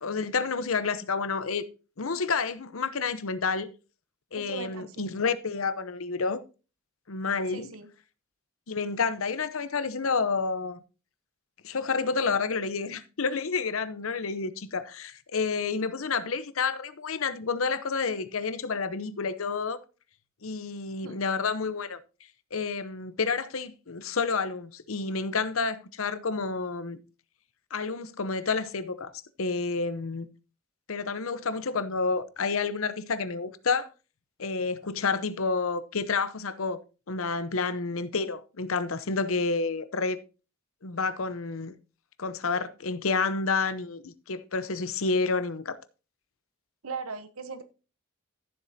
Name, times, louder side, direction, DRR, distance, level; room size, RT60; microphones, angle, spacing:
voice 1, 0.0-1.7 2.0-3.7 4.3-6.4 7.1-7.7 8.7-10.8 11.6-19.8 20.4-22.0 22.5-27.0 27.7-29.1 29.4-30.3 30.9-33.9 34.4-36.8 37.1-40.2 40.8-41.7 42.2-45.8, left 4 dB, 75° left, 0.8 m, -29 dB
voice 2, 4.3-5.1 7.5-7.9 21.0-21.2 46.8-47.6, right 4 dB, 80° right, 1.0 m, -39 dB
14.0 x 7.5 x 2.7 m
head